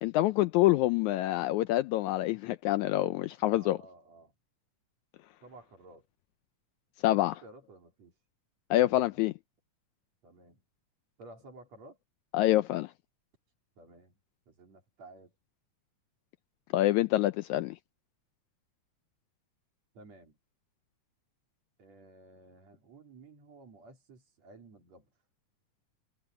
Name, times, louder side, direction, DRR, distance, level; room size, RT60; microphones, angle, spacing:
voice 1, 0.0-3.8 7.0-7.3 8.7-9.3 12.3-12.9 16.7-17.8, left 16 dB, 80° left, 1.8 m, -26 dB
voice 2, 3.4-4.3 5.4-6.1 7.1-8.1 8.8-9.2 10.2-10.6 11.2-12.0 13.8-14.2 14.5-15.3 19.9-20.4 21.8-25.1, right 2 dB, 55° right, 4.6 m, -54 dB
omnidirectional pair, 3.7 m